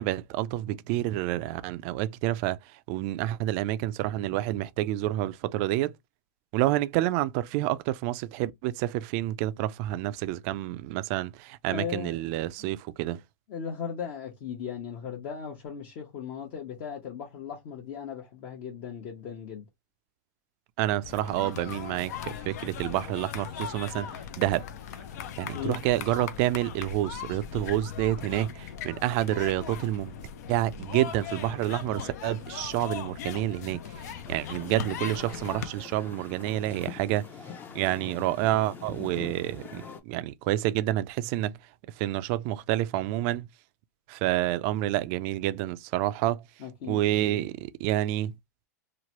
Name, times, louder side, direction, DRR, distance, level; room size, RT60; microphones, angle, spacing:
voice 1, 0.0-5.9 6.5-13.2 20.8-24.6 25.4-30.1 30.5-37.3 37.7-41.6 41.9-43.5 44.1-46.4 46.9-48.3, right 15 dB, 50° right, 0.3 m, -29 dB
voice 2, 11.7-12.2 12.6-12.7 13.5-19.6 25.5-25.8 46.6-47.4, left 7 dB, 50° left, 0.9 m, -37 dB
sound 1, 21.0-35.7, left 8 dB, 70° left, 0.5 m, -39 dB
sound 2, 34.3-40.0, left 6 dB, 20° left, 0.5 m, -43 dB
3.0 x 2.1 x 2.9 m
hypercardioid pair, 125°, 9 cm